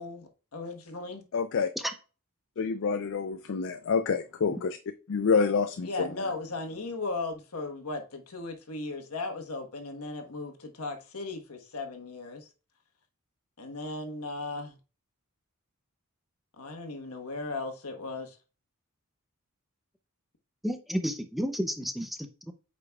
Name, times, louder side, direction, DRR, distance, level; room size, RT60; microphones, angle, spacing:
voice 1, 0.0-1.2 5.8-12.5 13.6-14.8 16.6-18.4, left 3 dB, 80° left, 1.3 m, -37 dB
voice 2, 1.3-1.7 2.6-4.8 5.1-6.1, left 5 dB, 60° left, 0.4 m, -27 dB
voice 3, 20.6-22.5, equal, ahead, 0.5 m, -32 dB
8.4 x 5.0 x 2.3 m
head